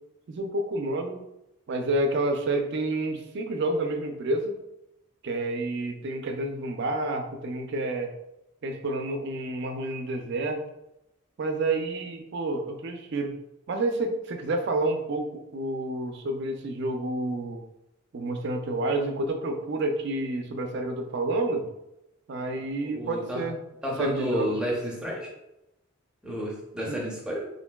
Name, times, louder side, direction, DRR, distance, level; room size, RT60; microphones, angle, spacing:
voice 1, 0.3-1.2 1.7-4.5 5.2-8.1 8.6-10.6 11.4-13.4 13.7-17.6 18.1-21.7 22.3-23.6 24.0-24.5 26.9-27.0, right 2 dB, 50° right, 5 dB, 0.4 m, -29 dB
voice 2, 22.5-23.4 23.8-25.3 26.2-27.5, equal, 5° right, -3 dB, 0.5 m, -31 dB
3.7 x 2.5 x 2.2 m, 0.88 s
head